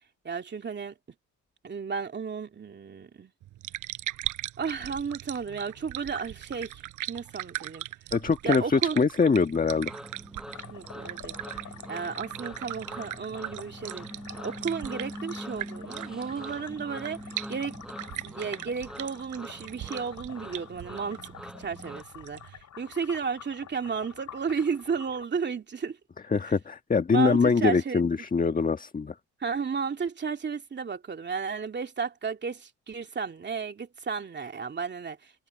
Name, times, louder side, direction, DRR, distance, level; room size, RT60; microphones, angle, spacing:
voice 1, 0.2-0.9 1.6-3.3 4.6-7.8 8.4-9.0 10.7-11.6 11.9-14.1 14.4-17.2 17.5-17.8 18.2-26.0 26.4-26.5 27.1-28.0 29.4-35.3, right 5 dB, 35° right, 2.7 m, -33 dB
sound 1, 3.4-22.6, right 14 dB, 85° right, 5.7 m, -39 dB
voice 2, 8.1-9.9 26.3-29.1, left 5 dB, 30° left, 1.4 m, -23 dB
sound 2, 9.7-22.0, equal, ahead, 7.6 m, -43 dB
sound 3, 10.5-25.3, left 10 dB, 65° left, 7.2 m, -48 dB
cardioid pair, 90°, 30 cm